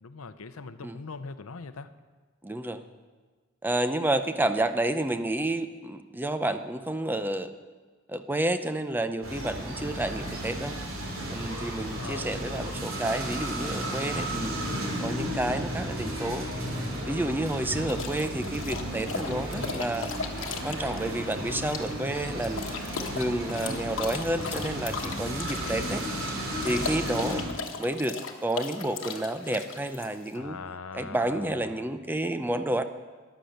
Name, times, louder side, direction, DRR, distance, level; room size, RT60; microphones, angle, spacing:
voice 1, 0.0-1.9 11.7-12.4 14.4-14.8 17.5-17.9 20.8-21.6 25.6-26.0 30.3-31.8, left 4 dB, 85° left, 12 dB, 0.7 m, -41 dB
voice 2, 2.4-2.8 3.6-7.5 8.1-10.8 11.3-14.6 15.0-16.5 17.0-20.1 20.6-22.7 23.1-26.0 26.6-27.4 27.8-30.6 30.9-32.8, right 1 dB, 10° right, 9 dB, 0.5 m, -30 dB
sound 1, 9.2-27.4, equal, 70° right, 3.3 m, -34 dB
sound 2, 17.9-30.4, left 5 dB, 65° left, 1.2 m, -37 dB
13.5 x 10.5 x 6.5 m, 1.4 s
head